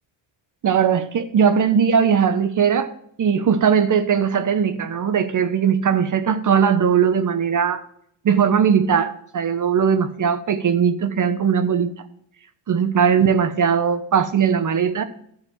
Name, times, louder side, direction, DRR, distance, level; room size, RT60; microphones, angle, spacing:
voice 1, 0.6-2.9 3.2-7.8 8.2-11.9 12.7-15.0, right 7 dB, 40° right, 11 dB, 0.8 m, -19 dB
12.0 x 4.2 x 7.6 m, 0.68 s
cardioid pair, 115°, 45 cm